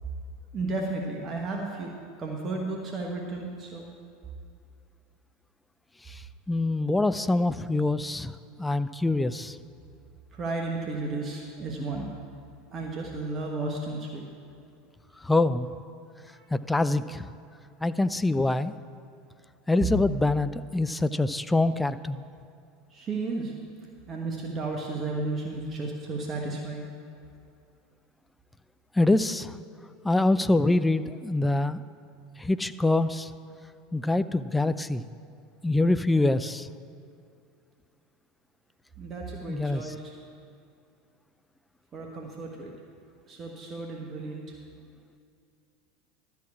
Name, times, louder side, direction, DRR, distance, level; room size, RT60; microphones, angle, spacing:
voice 1, 0.5-1.9 2.2-3.9 10.3-12.1 12.7-14.2 16.2-16.5 22.9-23.5 24.1-26.9 39.0-40.2 41.9-42.7 43.3-44.6, right 3 dB, 35° right, 0 dB, 1.3 m, -33 dB
voice 2, 6.5-8.3 8.6-9.6 15.2-15.7 16.5-17.3 17.8-18.7 19.7-22.3 29.0-29.6 30.0-31.8 32.4-33.3 33.9-35.0 35.6-36.7 39.5-39.9, left 2 dB, 10° left, 13 dB, 0.4 m, -25 dB
12.5 x 4.8 x 8.5 m, 2.5 s
hypercardioid pair, 80°, 0 cm